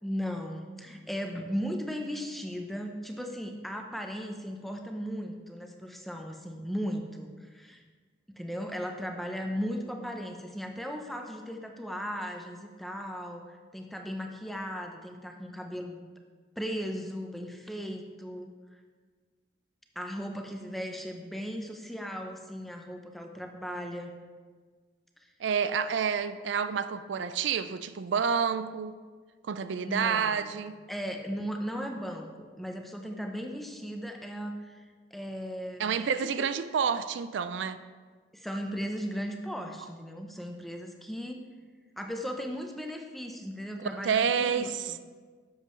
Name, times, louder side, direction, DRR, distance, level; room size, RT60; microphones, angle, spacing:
voice 1, 0.0-7.8 8.3-16.0 16.6-18.5 20.0-24.1 29.8-30.5 30.9-34.8 35.1-36.5 38.3-41.4 42.0-45.0, equal, ahead, 3 dB, 0.7 m, -37 dB
voice 2, 25.4-28.9 29.4-30.8 35.8-37.8 43.8-45.0, right 6 dB, 80° right, 12 dB, 0.4 m, -29 dB
10.5 x 7.4 x 3.2 m, 1.5 s
head